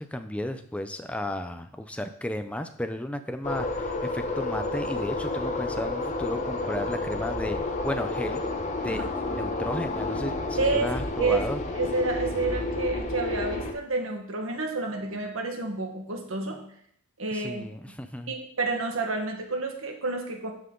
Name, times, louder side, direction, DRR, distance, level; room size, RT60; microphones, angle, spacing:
voice 1, 0.0-8.4 8.8-11.6 17.3-18.4, left 1 dB, 5° left, 7 dB, 0.6 m, -34 dB
sound 1, 3.4-13.7, left 2 dB, 35° left, 1.1 m, -30 dB
voice 2, 10.6-10.9 11.2-11.4 11.8-16.6 17.2-17.6 18.3-20.5, right 3 dB, 70° right, 2 dB, 1.6 m, -29 dB
12.5 x 5.7 x 3.9 m, 0.67 s
head